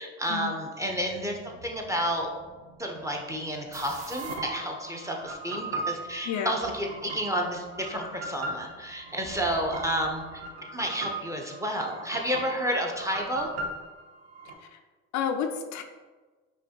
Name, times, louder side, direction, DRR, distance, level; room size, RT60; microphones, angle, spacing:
voice 1, 0.0-2.3 2.8-10.4 10.7-13.5, equal, 10° right, 1 dB, 0.7 m, -31 dB
sound 1, 0.8-10.4, right 2 dB, 60° right, 1.4 m, -54 dB
sound 2, 3.7-14.5, right 2 dB, 80° right, 0.7 m, -39 dB
voice 2, 15.1-15.8, left 8 dB, 60° left, 6 dB, 0.4 m, -30 dB
5.2 x 2.7 x 2.9 m, 1.3 s
hypercardioid pair, 70°, 34 cm